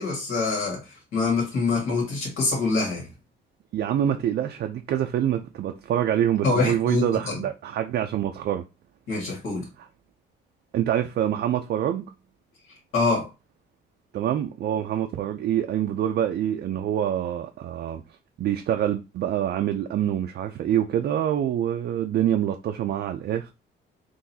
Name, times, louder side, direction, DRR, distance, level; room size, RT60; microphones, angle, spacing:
voice 1, 0.0-3.1 6.4-7.4 9.1-9.7 12.9-13.3, left 3 dB, 85° left, 1.7 m, -25 dB
voice 2, 3.7-8.6 10.7-12.0 14.1-18.0 18.4-23.5, right 10 dB, 55° right, 0.4 m, -26 dB
3.8 x 2.6 x 2.7 m
cardioid pair, 90°, 20 cm